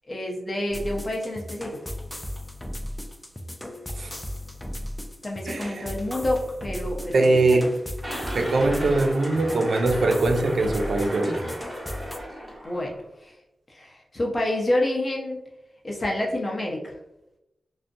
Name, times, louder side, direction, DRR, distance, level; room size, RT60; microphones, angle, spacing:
voice 1, 0.1-1.8 5.2-7.7 12.4-12.9 13.2-13.3 13.7-15.4 15.8-16.9, left 1 dB, 40° left, -1 dB, 0.7 m, -28 dB
sound 1, 0.7-12.2, left 1 dB, 10° left, 0.3 m, -36 dB
voice 2, 5.5-5.9 7.1-7.7 8.3-11.5, right 2 dB, 70° right, 5 dB, 0.4 m, -22 dB
sound 2, 8.0-13.0, equal, 20° right, 1.2 m, -35 dB
2.5 x 2.1 x 2.5 m, 0.89 s
cardioid pair, 60°, 0 cm